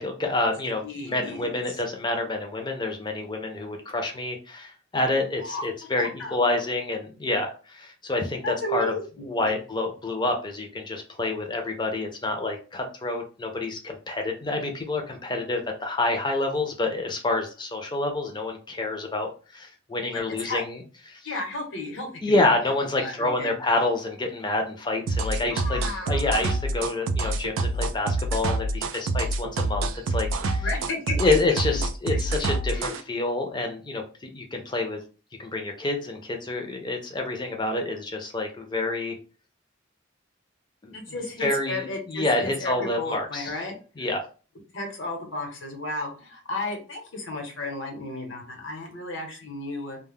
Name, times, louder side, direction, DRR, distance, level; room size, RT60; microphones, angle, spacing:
voice 1, 0.0-8.9 9.2-20.8 21.1-21.2 22.2-25.8 26.1-30.7 31.2-35.0 35.4-39.2 40.8-41.0 41.4-43.5 44.0-44.2, left 2 dB, 25° left, 3 dB, 0.5 m, -28 dB
voice 2, 0.8-1.8 5.4-5.7 6.0-6.7 8.4-9.6 20.1-20.6 21.2-23.5 25.3-26.5 30.6-31.3 32.7-33.0 40.9-43.8 44.7-50.0, left 2 dB, 75° left, 1 dB, 0.9 m, -34 dB
sound 1, 25.1-33.0, right 2 dB, 85° right, 0.4 m, -27 dB
2.2 x 2.1 x 3.5 m, 0.36 s
head